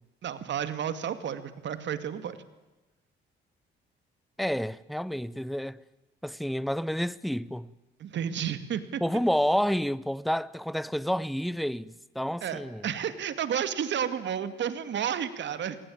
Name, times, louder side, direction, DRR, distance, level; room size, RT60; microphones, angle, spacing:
voice 1, 0.2-2.4 8.0-9.0 12.4-15.8, right 8 dB, 65° right, 2.4 m, -31 dB
voice 2, 4.4-5.8 6.2-7.7 9.0-12.8, equal, ahead, 0.8 m, -29 dB
28.0 x 20.5 x 8.8 m
cardioid pair, 90°, 20 cm